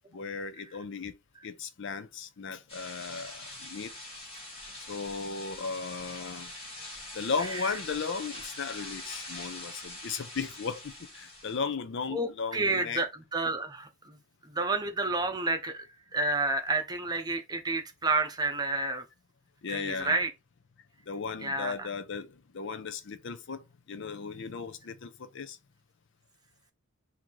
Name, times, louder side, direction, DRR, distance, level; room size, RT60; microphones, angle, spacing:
voice 1, 0.1-1.1 1.4-3.9 4.9-6.5 7.1-13.0 19.6-20.2 21.1-25.6, left 5 dB, 60° left, 0.5 m, -36 dB
sound 1, 2.7-11.6, left 1 dB, 25° left, 1.7 m, -43 dB
voice 2, 12.1-15.9 16.1-19.0 19.7-20.3 21.4-21.9, right 2 dB, 20° right, 0.7 m, -30 dB
3.8 x 2.8 x 4.5 m
head